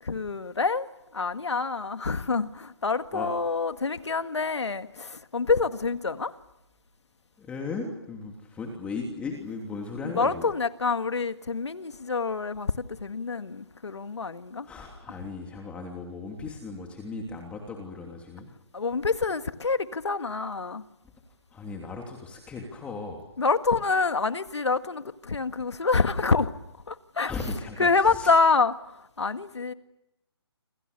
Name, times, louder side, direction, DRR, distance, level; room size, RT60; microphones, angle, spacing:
voice 1, 0.0-0.9 1.1-6.3 10.0-14.7 15.1-15.2 18.7-20.9 23.4-26.5 26.9-27.3 27.8-29.7, left 4 dB, 80° left, 1.8 m, -27 dB
voice 2, 7.4-10.5 14.6-18.5 21.5-23.2 27.2-28.3, left 4 dB, 10° left, 3.1 m, -36 dB
27.5 x 27.5 x 6.9 m
hypercardioid pair, 155°, 14 cm